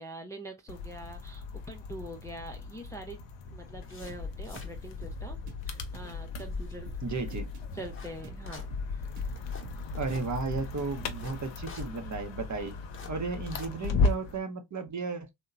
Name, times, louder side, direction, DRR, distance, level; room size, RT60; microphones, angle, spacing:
voice 1, 0.0-3.2 3.5-5.4 5.6-6.9 7.7-8.7, right 1 dB, 5° left, 0.5 m, -44 dB
Bike Sounds, 0.7-14.4, left 4 dB, 65° left, 0.7 m, -36 dB
sound 1, 3.5-14.3, left 3 dB, 25° left, 0.8 m, -49 dB
sound 2, 4.1-11.4, right 5 dB, 75° right, 0.7 m, -48 dB
voice 2, 7.0-7.5 9.9-12.7 13.1-15.3, right 4 dB, 35° right, 0.7 m, -34 dB
2.8 x 2.2 x 2.4 m
supercardioid pair, 50°, 49 cm